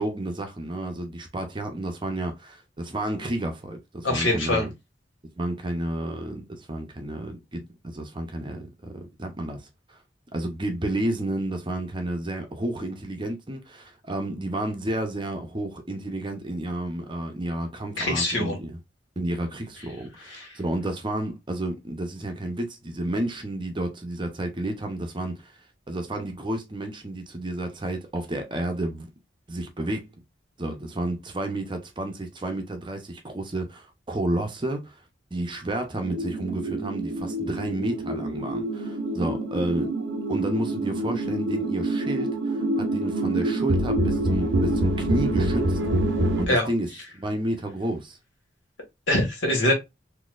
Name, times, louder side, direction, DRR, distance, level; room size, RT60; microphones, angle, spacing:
voice 1, 0.0-4.7 5.4-10.0 10.3-18.8 19.2-25.6 25.9-29.1 29.5-30.1 30.6-35.0 35.3-39.9 40.3-45.8 46.4-48.2, right 1 dB, 25° right, 0.7 m, -31 dB
voice 2, 4.0-4.7 18.0-18.6 20.3-20.5 46.5-46.7 49.1-49.7, left 1 dB, 85° left, 1.7 m, -23 dB
sound 1, 36.0-46.5, right 1 dB, 70° right, 0.6 m, -26 dB
4.0 x 2.8 x 2.4 m
head